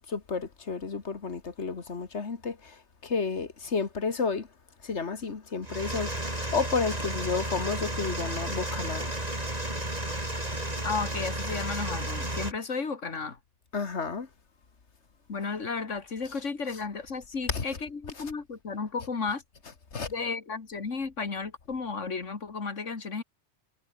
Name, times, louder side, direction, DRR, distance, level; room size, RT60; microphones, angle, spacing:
voice 1, 0.1-4.5 4.8-9.1 13.7-14.3 17.5-17.6 19.9-20.1, left 5 dB, 65° left, 2.1 m, -31 dB
sound 1, 5.6-12.5, right 1 dB, 35° right, 5.5 m, -32 dB
voice 2, 10.8-13.4 15.3-19.4 20.1-23.2, left 4 dB, 85° left, 2.6 m, -33 dB
omnidirectional pair, 1.2 m